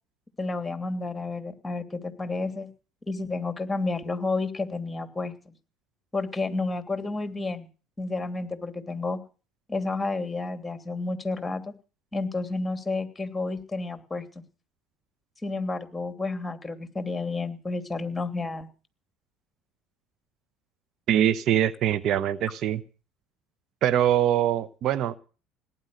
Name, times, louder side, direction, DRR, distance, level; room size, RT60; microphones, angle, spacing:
voice 1, 0.4-2.7 3.1-5.5 6.1-7.7 8.0-9.2 9.7-11.7 12.1-14.4 15.4-18.7, left 3 dB, 15° left, 10 dB, 3.0 m, -31 dB
voice 2, 21.1-22.8 23.8-25.2, right 11 dB, 60° right, 16 dB, 1.0 m, -23 dB
18.0 x 10.5 x 6.6 m, 0.37 s
hypercardioid pair, 75°, 0 cm